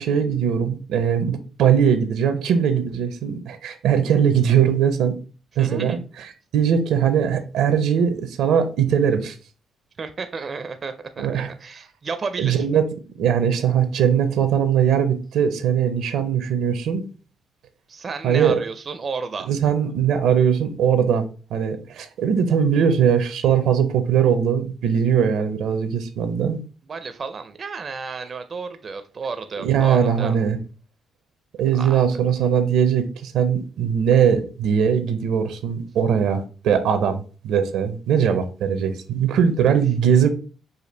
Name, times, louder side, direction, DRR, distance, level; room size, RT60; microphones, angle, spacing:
voice 1, 0.0-5.1 5.6-9.3 11.2-11.5 12.4-12.8 13.2-17.0 18.2-18.6 19.5-26.6 29.6-30.6 31.6-40.3, right 8 dB, 80° right, 0.6 m, -20 dB
voice 2, 5.6-6.0 10.0-12.6 17.9-19.5 26.9-30.4 31.7-32.0, right 4 dB, 40° right, 0.4 m, -32 dB
5.1 x 2.4 x 3.9 m
cardioid pair, 90°, 0 cm